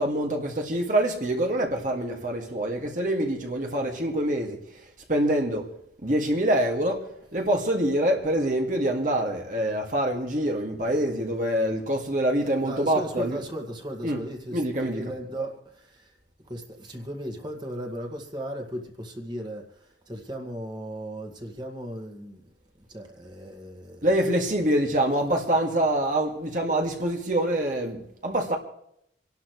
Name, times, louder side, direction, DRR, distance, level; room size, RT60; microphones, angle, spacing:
voice 1, 0.0-4.6 5.1-5.7 6.0-13.4 14.0-14.2 14.5-15.0 24.0-28.6, right 1 dB, 45° right, 1.9 m, -25 dB
voice 2, 12.6-16.1 16.5-22.5 22.9-24.1, right 1 dB, 25° right, 1.9 m, -36 dB
27.5 x 11.5 x 3.1 m
head